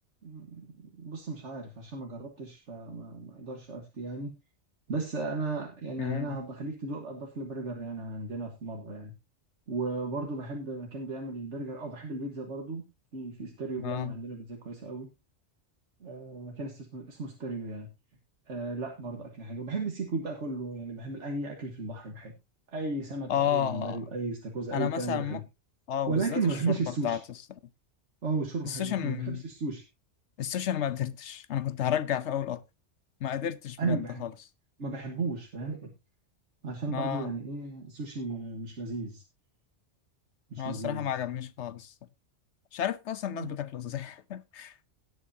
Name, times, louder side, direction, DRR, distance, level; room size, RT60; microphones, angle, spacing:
voice 1, 0.2-4.4 4.9-9.1 9.7-12.8 13.1-15.1 16.0-17.9 18.5-22.3 22.7-25.4 26.1-27.2 28.2-29.9 33.8-34.2 34.8-35.9 36.6-39.2 40.5-41.1 43.3-43.6, right 3 dB, 85° right, 1.9 m, -35 dB
voice 2, 6.0-6.4 13.8-14.1 23.3-24.0 24.7-25.4 25.9-27.2 28.6-29.4 30.4-32.6 33.2-34.3 36.9-37.3 40.6-41.9 42.7-44.7, left 10 dB, 80° left, 1.1 m, -32 dB
18.0 x 8.1 x 2.8 m
omnidirectional pair, 1.2 m